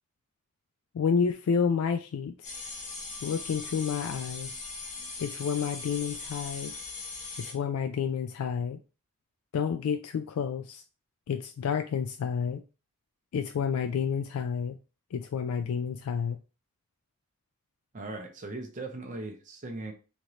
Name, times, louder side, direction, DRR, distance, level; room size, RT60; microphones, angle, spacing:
voice 1, 0.9-2.5 3.2-4.6 5.2-6.7 7.4-8.8 9.5-10.8 11.3-12.6 13.3-14.8 15.1-16.4, left 6 dB, 80° left, 0.3 m, -30 dB
sound 1, 2.4-7.5, left 3 dB, 35° left, 1.2 m, -40 dB
voice 2, 17.9-19.9, right 2 dB, 35° right, 0.6 m, -39 dB
3.1 x 2.9 x 3.8 m
head